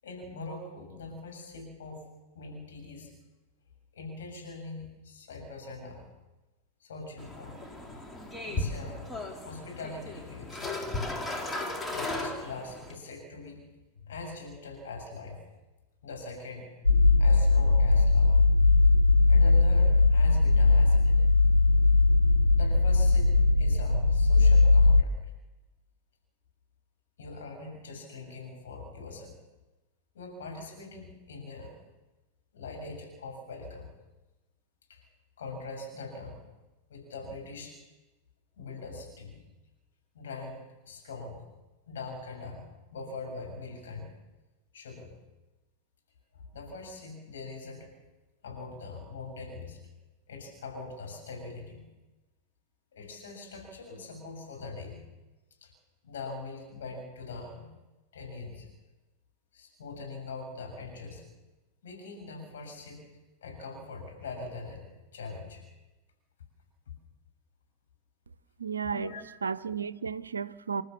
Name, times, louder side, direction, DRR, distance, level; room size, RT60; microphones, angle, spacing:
voice 1, 0.0-2.1 2.3-3.1 3.9-6.0 6.8-7.6 8.5-9.0 9.4-10.7 11.9-13.6 14.0-15.4 16.0-16.7 17.2-18.4 19.3-21.2 22.5-23.3 23.6-25.1 27.2-29.3 30.1-31.8 32.5-33.9 34.9-35.0 35.4-36.4 36.9-37.7 38.6-39.4 40.1-41.4 41.9-42.6 42.9-44.1 44.7-45.1 46.3-47.9 48.4-49.8 50.3-51.8 52.9-55.0 55.6-55.7 56.0-57.7 58.1-58.7 59.5-61.2 61.8-63.0 63.4-64.8 65.1-65.6 68.9-69.2, left 3 dB, 65° left, 7.4 m, -42 dB
sound 1, 7.2-13.0, left 2 dB, 10° left, 3.8 m, -36 dB
sound 2, 16.9-25.0, left 3 dB, 85° left, 0.9 m, -20 dB
voice 2, 68.6-69.1 69.4-70.8, right 6 dB, 75° right, 0.7 m, -33 dB
27.5 x 13.0 x 7.2 m
figure-of-eight pair, 90°, 0 cm